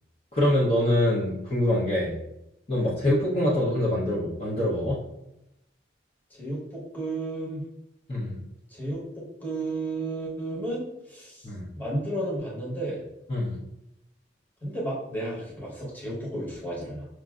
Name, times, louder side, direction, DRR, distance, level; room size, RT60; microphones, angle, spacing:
voice 1, 0.3-2.1 2.7-5.0 8.1-8.4 11.4-11.7 13.3-13.6, left 1 dB, 30° left, -7 dB, 0.8 m, -24 dB
voice 2, 6.3-7.6 8.7-11.5 11.7-13.0 14.6-17.1, right 1 dB, 10° left, -6 dB, 1.0 m, -33 dB
6.1 x 2.6 x 2.4 m, 0.87 s
head